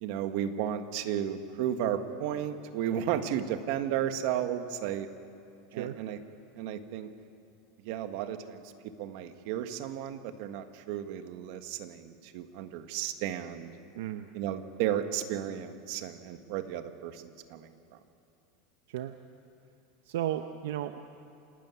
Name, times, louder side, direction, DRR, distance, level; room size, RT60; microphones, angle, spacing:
voice 1, 0.0-5.1 5.7-6.2 6.5-7.1 7.8-13.7 14.3-18.0, right 10 dB, 55° right, 8 dB, 1.5 m, -34 dB
voice 2, 13.9-14.3 18.9-19.1 20.0-21.0, right 12 dB, 80° right, 8 dB, 0.9 m, -34 dB
28.0 x 13.0 x 9.6 m, 2.8 s
supercardioid pair, 160°, 0 cm